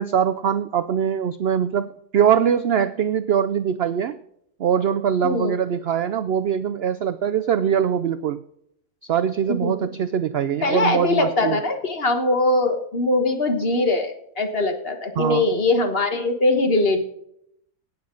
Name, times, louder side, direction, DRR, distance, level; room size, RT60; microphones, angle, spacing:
voice 1, 0.0-4.2 4.6-8.4 9.0-11.6 15.2-15.5, right 8 dB, 75° right, 12 dB, 0.5 m, -22 dB
voice 2, 10.6-17.1, left 2 dB, 40° left, 6 dB, 1.5 m, -21 dB
17.5 x 7.1 x 3.9 m, 0.73 s
omnidirectional pair, 1.6 m